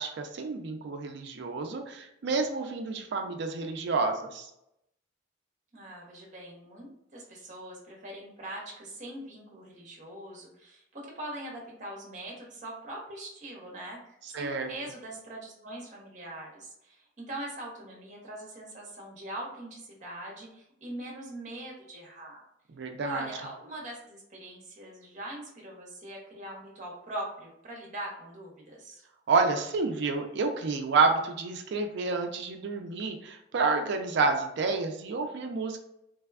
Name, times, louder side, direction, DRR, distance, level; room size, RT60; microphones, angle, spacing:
voice 1, 0.0-4.5 14.3-14.7 22.7-23.3 29.3-35.8, right 4 dB, 60° right, 4 dB, 0.4 m, -29 dB
voice 2, 5.7-22.4 23.0-29.0, right 1 dB, 40° right, -1 dB, 0.8 m, -42 dB
3.2 x 2.1 x 2.3 m, 0.81 s
head